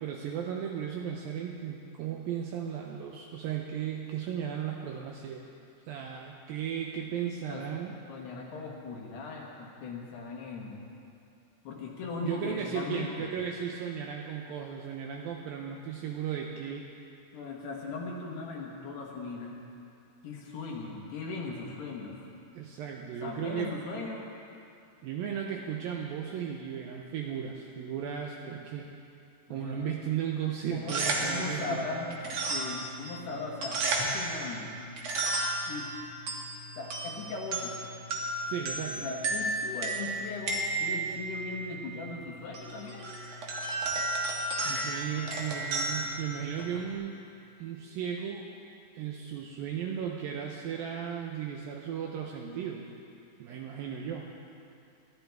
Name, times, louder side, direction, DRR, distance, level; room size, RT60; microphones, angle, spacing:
voice 1, 0.0-5.5 5.9-7.9 12.2-16.9 22.5-23.7 25.0-28.9 29.5-31.8 38.5-39.1 44.6-47.2 47.6-48.5 48.9-52.9 53.4-54.3, right 8 dB, 80° right, 1 dB, 2.2 m, -35 dB
voice 2, 8.1-10.8 11.7-13.3 17.3-19.6 20.2-22.2 23.2-24.3 29.5-29.9 30.7-34.7 35.7-35.9 36.8-37.8 39.0-43.2, left 3 dB, 75° left, -2 dB, 3.5 m, -38 dB
sound 1, 30.7-46.9, right 2 dB, 60° right, 1.7 m, -34 dB
20.5 x 13.0 x 3.5 m, 2.6 s
omnidirectional pair, 4.9 m